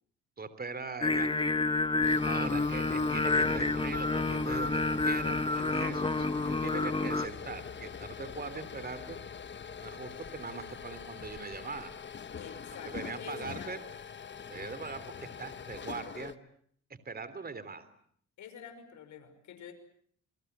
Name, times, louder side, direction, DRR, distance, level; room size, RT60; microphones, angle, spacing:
voice 1, 0.4-1.6 2.2-9.2 9.8-11.9 12.9-13.8 14.5-16.3 17.0-17.9, right 4 dB, 30° right, 13 dB, 3.3 m, -41 dB
Singing, 1.0-7.3, left 3 dB, 15° left, 1.5 m, -29 dB
sound 1, 1.9-16.4, left 6 dB, 40° left, 1.3 m, -43 dB
voice 2, 12.4-13.8 18.4-19.7, left 8 dB, 75° left, 7 dB, 5.7 m, -47 dB
28.0 x 23.5 x 8.1 m, 0.64 s
cardioid pair, 90°, 30 cm